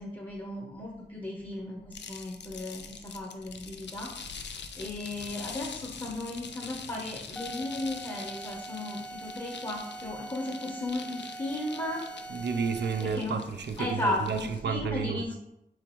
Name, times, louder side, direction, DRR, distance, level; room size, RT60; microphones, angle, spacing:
voice 1, 0.0-12.0 13.0-13.4 13.8-15.4, left 1 dB, 30° left, 0.8 m, -35 dB
sound 1, 1.9-14.6, left 6 dB, 90° left, 0.4 m, -45 dB
sound 2, 7.4-13.3, right 2 dB, 10° left, 0.3 m, -43 dB
voice 2, 12.3-15.4, right 6 dB, 80° right, 0.4 m, -31 dB
7.1 x 2.4 x 3.0 m
wide cardioid pair, 90°, 18 cm